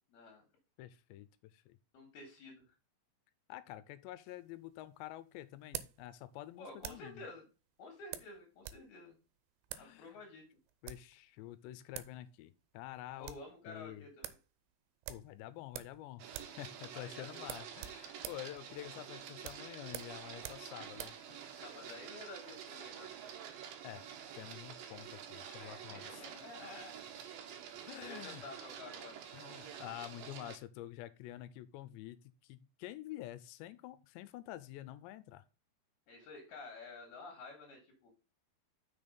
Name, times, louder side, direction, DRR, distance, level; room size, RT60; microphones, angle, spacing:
voice 1, 0.1-0.4 1.9-2.7 6.6-7.4 7.8-9.2 9.8-10.4 13.2-14.3 16.9-17.5 21.6-23.1 25.6-26.9 27.8-29.2 36.1-38.1, left 3 dB, 65° left, 3.3 m, -51 dB
voice 2, 0.8-1.8 3.5-7.2 9.7-10.2 10.8-13.4 13.7-14.1 15.1-21.6 23.8-24.1 24.3-26.2 27.9-28.4 29.3-35.4, left 14 dB, 85° left, 2.8 m, -48 dB
sound 1, 4.3-7.2 8.1-8.9 9.1-9.2 9.6-9.9 10.7-11.1 11.7-11.8 11.9-12.2 12.5-12.6 12.9-13.5 13.9-14.0 14.2-14.5 15.0-16.0 16.3-16.6 16.9-17.0 17.4-21.2, right 13 dB, 85° right, 3.0 m, -47 dB
Printer, 16.2-30.6, right 8 dB, 70° right, 2.3 m, -49 dB
6.4 x 5.4 x 5.2 m
omnidirectional pair, 5.1 m